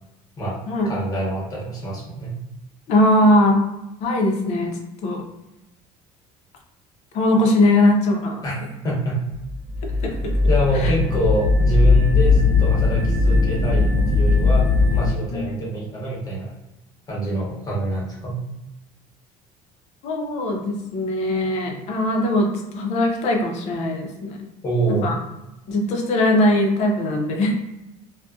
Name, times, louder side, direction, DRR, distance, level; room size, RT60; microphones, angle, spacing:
voice 1, 0.8-2.3 8.4-8.5 8.8-9.2 10.5-16.5 17.1-18.4 24.6-25.1, right 1 dB, 25° left, -4 dB, 0.9 m, -25 dB
voice 2, 2.9-3.6 4.0-5.2 7.1-8.4 10.0-10.3 10.8-10.9 15.3-15.5 20.0-22.5 22.7-24.4 24.9-25.2 25.7-27.5, left 1 dB, 55° left, 1 dB, 0.6 m, -20 dB
sound 1, 9.4-15.1, left 3 dB, 80° right, 0.8 m, -18 dB
2.5 x 2.2 x 2.3 m, 0.95 s
cardioid pair, 135°, 13 cm